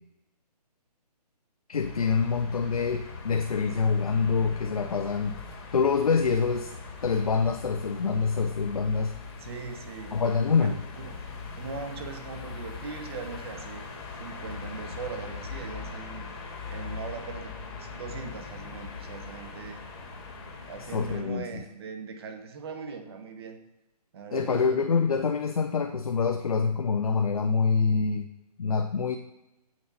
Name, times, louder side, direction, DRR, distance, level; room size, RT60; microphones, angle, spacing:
voice 1, 1.7-5.4 5.7-6.7 7.0-9.1 10.1-10.8 20.9-21.6 24.3-28.3 28.6-29.2, left 5 dB, 60° left, 6 dB, 1.0 m, -26 dB
sound 1, 1.8-21.2, left 4 dB, 35° left, 2.6 m, -41 dB
voice 2, 9.4-10.2 10.5-11.2 11.6-13.8 14.2-16.3 16.7-19.8 20.6-23.6 24.1-24.8, right 5 dB, 40° right, 5 dB, 1.8 m, -40 dB
17.0 x 6.5 x 4.3 m, 0.95 s
figure-of-eight pair, 140°, 21 cm